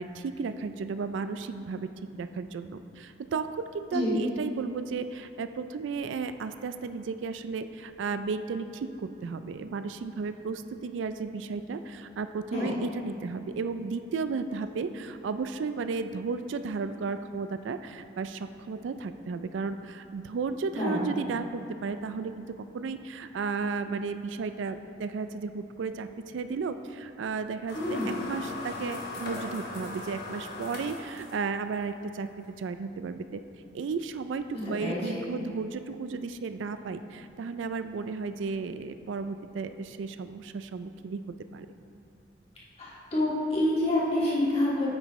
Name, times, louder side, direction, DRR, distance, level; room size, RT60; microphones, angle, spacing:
voice 1, 0.0-32.3 32.6-33.4 33.7-41.2 41.5-41.7, right 4 dB, 75° right, 10 dB, 0.3 m, -34 dB
voice 2, 20.7-21.1 27.7-28.1 34.6-35.2 42.8-44.9, left 1 dB, 35° left, -7 dB, 1.9 m, -27 dB
sound 1, 27.7-31.7, left 3 dB, 60° left, 1.3 m, -39 dB
8.9 x 8.7 x 3.1 m, 2.6 s
head